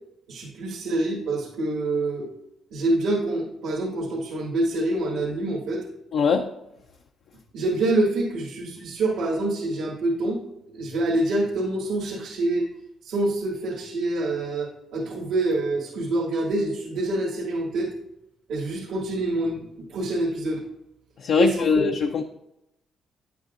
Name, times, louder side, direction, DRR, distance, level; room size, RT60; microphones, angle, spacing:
voice 1, 0.3-2.3 2.7-5.8 7.5-10.4 10.7-12.7 13.0-17.9 18.5-20.6 21.3-21.8, right 2 dB, 85° right, -5 dB, 1.6 m, -26 dB
voice 2, 6.1-6.5 21.2-22.2, left 5 dB, 70° left, 5 dB, 0.5 m, -22 dB
10.0 x 8.0 x 2.5 m, 0.87 s
cardioid pair, 90°, 0 cm